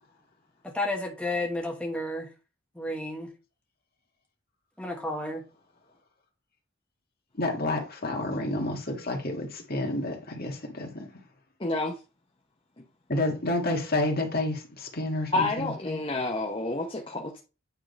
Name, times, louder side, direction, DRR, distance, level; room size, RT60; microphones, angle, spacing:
voice 1, 0.6-2.3 2.8-3.3 4.8-5.4, left 1 dB, 5° left, 1.3 m, -31 dB
voice 2, 7.3-11.1 13.1-15.7, left 2 dB, 45° left, 1.9 m, -29 dB
voice 3, 11.6-12.0 15.3-17.4, left 2 dB, 25° left, 0.9 m, -29 dB
9.0 x 3.8 x 5.2 m
head